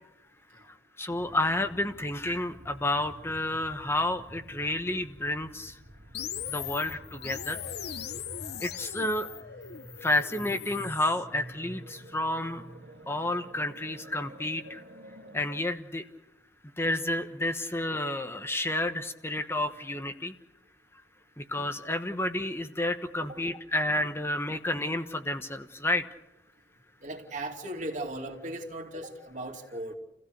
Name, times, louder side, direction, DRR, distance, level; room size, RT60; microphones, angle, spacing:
voice 1, 1.0-5.7 6.5-7.6 8.6-9.3 10.0-12.6 13.1-14.8 15.3-16.0 16.8-20.3 21.4-26.0, left 1 dB, 15° left, 7 dB, 1.1 m, -30 dB
sound 1, 1.1-15.6, right 1 dB, 80° right, 2.4 m, -49 dB
sound 2, 6.1-11.2, left 9 dB, 65° left, 0.9 m, -39 dB
voice 2, 27.0-30.0, right 1 dB, 45° right, 3 dB, 2.9 m, -37 dB
29.0 x 16.0 x 6.7 m, 0.93 s
head